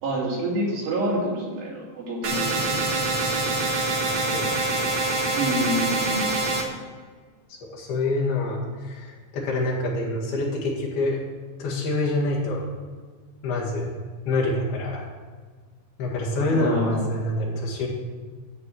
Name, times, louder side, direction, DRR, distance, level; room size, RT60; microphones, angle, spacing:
voice 1, 0.0-3.0 5.4-6.3 16.5-17.0, right 1 dB, 80° right, -5 dB, 4.9 m, -27 dB
sound 1, 2.2-6.6, right 2 dB, 50° right, 1.5 m, -25 dB
voice 2, 4.1-4.6 7.5-11.2 11.6-12.6 13.4-13.9 14.3-15.1 16.0-17.9, left 2 dB, 70° left, -4 dB, 3.8 m, -26 dB
13.0 x 4.7 x 7.9 m, 1.5 s
omnidirectional pair, 4.7 m